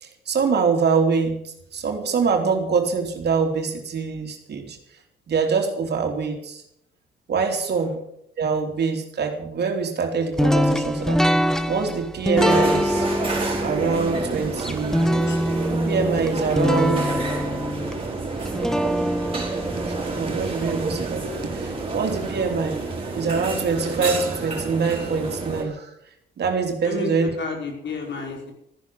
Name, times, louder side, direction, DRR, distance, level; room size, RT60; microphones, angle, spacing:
voice 1, 0.0-4.8 5.3-6.6 7.3-7.9 8.4-11.2 11.7-13.1 13.6-15.1 15.7-17.1 19.8-25.9 26.4-27.3, right 5 dB, 55° right, 4 dB, 3.4 m, -24 dB
sound 1, 10.4-21.4, equal, ahead, 1.1 m, -24 dB
sound 2, 12.4-25.6, right 3 dB, 25° right, 5.2 m, -29 dB
voice 2, 26.8-28.5, left 4 dB, 65° left, 2 dB, 5.2 m, -32 dB
14.0 x 10.5 x 7.7 m, 0.75 s
cardioid pair, 90°, 20 cm